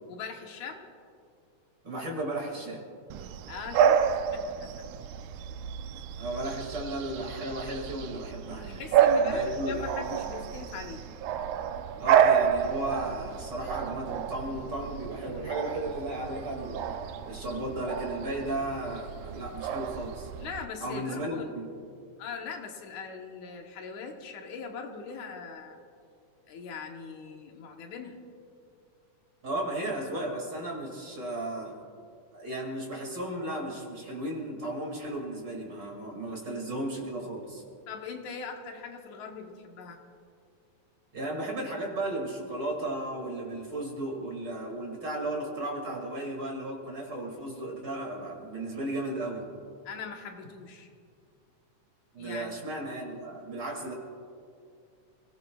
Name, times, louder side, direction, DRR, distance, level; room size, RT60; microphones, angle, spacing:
voice 1, 0.1-0.8 3.5-4.0 4.3-4.7 8.7-11.0 20.4-21.5 22.2-25.8 26.5-28.2 36.2-36.6 37.9-40.0 49.9-50.9 52.2-52.7, left 5 dB, 75° left, 3 dB, 2.5 m, -41 dB
voice 2, 1.8-2.8 5.9-9.8 12.0-17.0 17.3-20.3 20.8-21.7 29.4-31.7 32.3-37.6 41.1-49.4 52.1-53.9, right 1 dB, 35° right, -1 dB, 2.8 m, -35 dB
Bark / Bird vocalization bird call bird song, 3.1-20.7, right 8 dB, 80° right, 2.1 m, -29 dB
29.5 x 17.5 x 2.4 m, 2.3 s
omnidirectional pair, 3.5 m